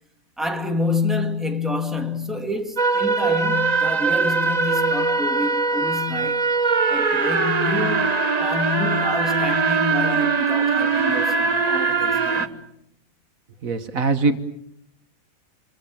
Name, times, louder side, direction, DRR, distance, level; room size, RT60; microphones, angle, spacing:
voice 1, 0.4-6.4 6.9-12.6, left 2 dB, ahead, 2.1 m, -28 dB
sound 1, 2.8-12.5, right 4 dB, 30° right, 1.0 m, -21 dB
voice 2, 13.6-14.4, right 3 dB, 75° right, 1.8 m, -21 dB
27.0 x 24.0 x 7.2 m
omnidirectional pair, 1.5 m